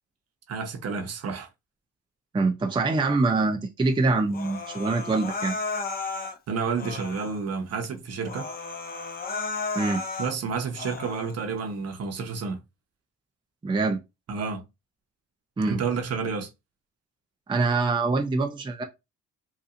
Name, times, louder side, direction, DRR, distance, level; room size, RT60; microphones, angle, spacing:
voice 1, 0.5-1.5 6.5-8.5 10.2-12.6 14.3-14.6 15.7-16.5, right 5 dB, 55° right, 1.0 m, -30 dB
voice 2, 2.3-5.5 9.7-10.0 13.6-14.0 15.6-15.8 17.5-18.8, right 3 dB, 15° right, 0.5 m, -24 dB
Human voice, 4.3-6.4 6.8-7.4 7.8-7.9 8.2-10.3 10.7-11.3, left 4 dB, 30° left, 0.8 m, -34 dB
4.2 x 2.6 x 2.5 m
cardioid pair, 90°, 30 cm